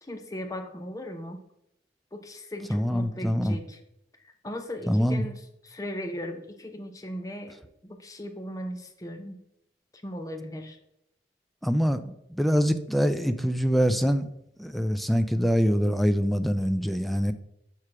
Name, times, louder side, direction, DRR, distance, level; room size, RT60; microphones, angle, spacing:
voice 1, 0.1-1.4 2.1-3.8 4.4-5.4 5.7-7.5 7.8-9.4 10.0-10.8, equal, 20° left, 5 dB, 0.7 m, -37 dB
voice 2, 2.7-3.6 4.9-5.3 11.6-14.3 14.6-17.3, equal, ahead, 10 dB, 0.3 m, -24 dB
5.8 x 4.9 x 4.8 m, 0.78 s
head